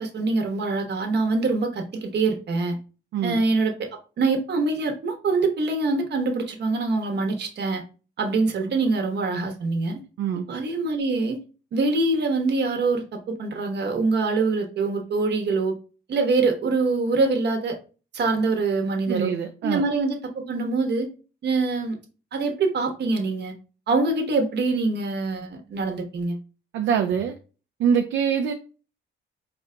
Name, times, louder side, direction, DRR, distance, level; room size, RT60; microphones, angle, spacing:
voice 1, 0.0-2.8 3.2-3.9 4.2-7.8 8.2-10.0 10.5-11.4 11.7-15.8 16.1-17.8 18.1-19.3 19.6-21.1 21.4-22.0 22.3-23.5 23.9-26.4, right 3 dB, 60° right, 4 dB, 1.1 m, -24 dB
voice 2, 19.1-19.8 26.7-27.4 27.8-28.5, right 7 dB, 75° right, 5 dB, 0.5 m, -24 dB
4.2 x 2.2 x 3.7 m, 0.35 s
cardioid pair, 90°, 20 cm